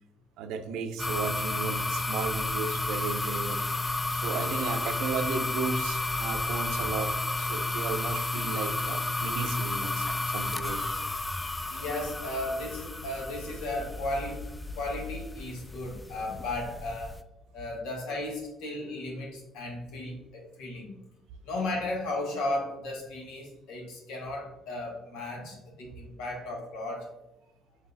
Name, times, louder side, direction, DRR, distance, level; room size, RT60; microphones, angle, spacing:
voice 1, 0.4-3.6 4.1-10.8 25.4-25.5, right 5 dB, 80° right, 7 dB, 0.5 m, -35 dB
sound 1, 1.0-17.2, left 2 dB, 20° left, 0.3 m, -32 dB
voice 2, 11.7-14.4 14.8-17.2 17.5-20.9 21.4-27.1, left 2 dB, 85° left, 1 dB, 1.2 m, -35 dB
4.8 x 3.9 x 2.6 m, 0.96 s
supercardioid pair, 75°, 0 cm